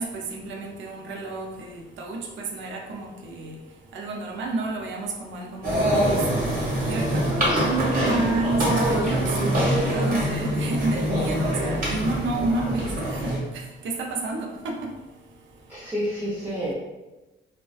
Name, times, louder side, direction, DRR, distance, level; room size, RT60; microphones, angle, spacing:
voice 1, 0.0-3.5 3.9-6.2 6.9-13.3 13.8-14.5, right 3 dB, 75° right, 1 dB, 0.5 m, -30 dB
sound 1, 5.6-13.4, equal, 45° right, 1.1 m, -24 dB
voice 2, 15.7-16.7, equal, 10° right, -10 dB, 0.7 m, -30 dB
2.4 x 2.2 x 2.4 m, 1.1 s
cardioid pair, 90°, 20 cm